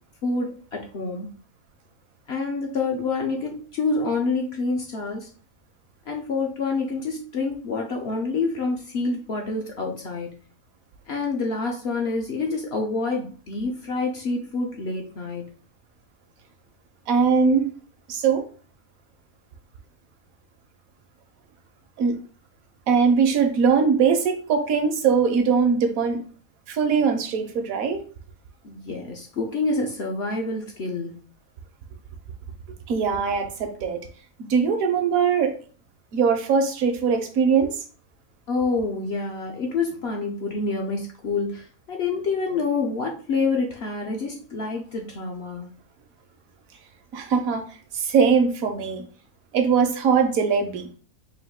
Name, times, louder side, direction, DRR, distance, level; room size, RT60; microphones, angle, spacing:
voice 1, 0.2-1.3 2.3-5.3 6.1-10.3 11.1-15.4 28.6-31.2 38.5-45.7, left 3 dB, 60° left, 1 dB, 0.7 m, -27 dB
voice 2, 17.1-17.7 18.1-18.4 22.0-22.2 22.9-26.2 26.7-28.0 32.9-34.0 34.5-35.5 36.1-37.7 47.1-47.6 47.9-49.0 49.5-50.9, right 6 dB, 70° right, 6 dB, 1.1 m, -21 dB
3.9 x 2.6 x 3.5 m, 0.41 s
omnidirectional pair, 1.5 m